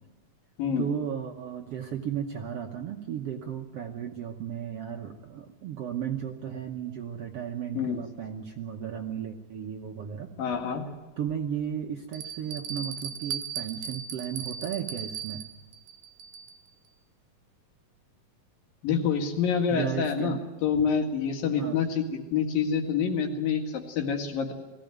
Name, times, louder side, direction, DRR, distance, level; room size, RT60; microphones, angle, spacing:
voice 1, 0.8-10.3 11.2-15.5 19.7-20.4 21.6-21.8, right 9 dB, 65° right, 3 dB, 1.6 m, -34 dB
voice 2, 10.4-10.9 18.8-24.5, left 6 dB, 80° left, 4 dB, 3.8 m, -27 dB
Bell, 10.5-10.6 11.3-11.4 12.1-16.7, right 7 dB, 90° right, 2.7 m, -38 dB
20.0 x 16.0 x 9.2 m, 1.2 s
omnidirectional pair, 4.0 m